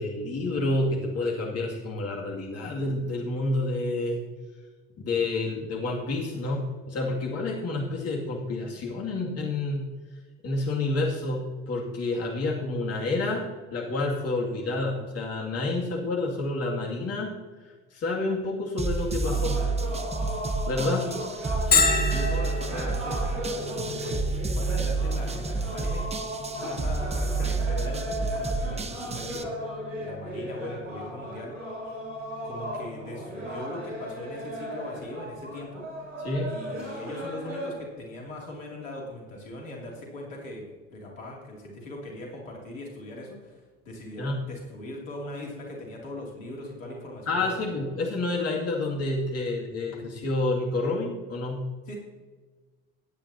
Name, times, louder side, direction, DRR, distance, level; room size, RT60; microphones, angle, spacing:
voice 1, 0.0-4.2 5.0-9.9 10.4-13.4 13.7-17.3 17.9-19.6 20.7-21.1 36.2-36.5 44.2-44.4 47.3-51.6, left 2 dB, 40° left, -1 dB, 2.4 m, -29 dB
sound 1, 18.8-29.4, right 3 dB, 15° right, 1.0 m, -29 dB
sound 2, 19.2-37.7, equal, 90° right, 3.9 m, -36 dB
voice 2, 21.7-26.1 26.6-29.5 30.0-31.6 31.8-32.0 32.4-35.8 36.5-47.8 51.9-52.0, left 1 dB, 80° left, -1 dB, 2.8 m, -40 dB
Bell, 21.7-37.2, left 4 dB, 25° left, 1.4 m, -34 dB
17.5 x 9.2 x 2.8 m, 1.4 s
figure-of-eight pair, 60°, 38 cm